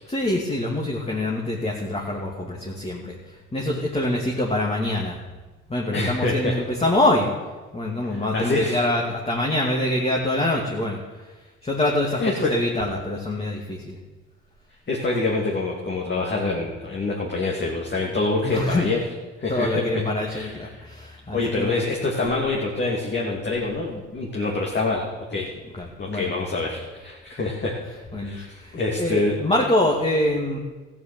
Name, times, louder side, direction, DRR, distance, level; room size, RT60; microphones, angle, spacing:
voice 1, 0.1-5.2 5.7-7.3 7.7-14.0 18.4-18.9 19.5-21.8 25.7-26.3 28.1-30.6, left 1 dB, 20° left, -2 dB, 2.5 m, -25 dB
voice 2, 5.9-6.5 8.3-8.8 12.2-12.5 14.9-19.0 19.4-19.8 20.3-20.5 21.3-25.5 26.0-29.3, left 3 dB, 35° left, -2 dB, 2.9 m, -26 dB
14.0 x 7.6 x 9.2 m, 1.2 s
supercardioid pair, 70°, 30 cm